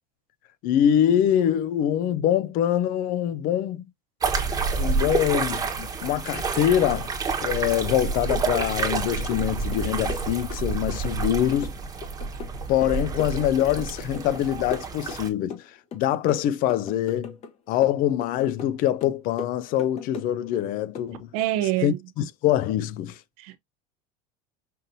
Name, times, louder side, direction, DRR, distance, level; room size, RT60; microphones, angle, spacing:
voice 1, 0.6-3.8 4.7-7.1 7.4-11.7 12.7-15.6 15.9-17.4 17.7-21.3 21.8-23.2, left 11 dB, 50° left, 0.5 m, -24 dB
sound 1, 4.2-15.3, right 5 dB, 20° right, 1.1 m, -29 dB
sound 2, 8.9-9.5 9.7-11.3 11.6-14.4 14.7-15.7 15.9-17.5 17.8-18.7 19.0-20.6 20.9-21.1, left 5 dB, 35° left, 0.9 m, -39 dB
voice 2, 21.1-22.0 23.4-23.6, right 14 dB, 80° right, 0.8 m, -26 dB
5.5 x 2.6 x 2.7 m
supercardioid pair, 135°, 18 cm